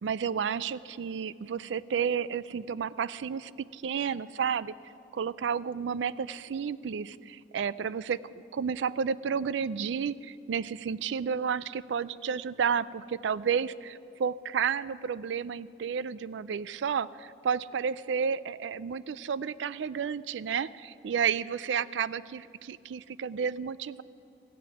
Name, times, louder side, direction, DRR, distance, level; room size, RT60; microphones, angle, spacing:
voice 1, 0.0-4.7 5.1-8.2 8.5-24.0, right 7 dB, 85° right, 18 dB, 0.4 m, -31 dB
15.5 x 7.6 x 9.1 m, 2.7 s
head